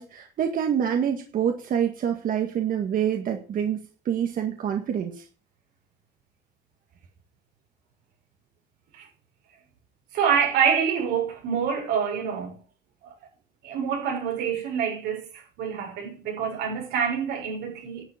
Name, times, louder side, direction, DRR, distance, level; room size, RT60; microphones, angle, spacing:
voice 1, 0.0-5.2, right 8 dB, 55° right, 1.9 m, -26 dB
voice 2, 10.1-12.6 13.0-13.1 13.6-18.0, right 7 dB, 90° right, 5.8 m, -26 dB
11.0 x 7.5 x 8.6 m
cardioid pair, 110°, 17 cm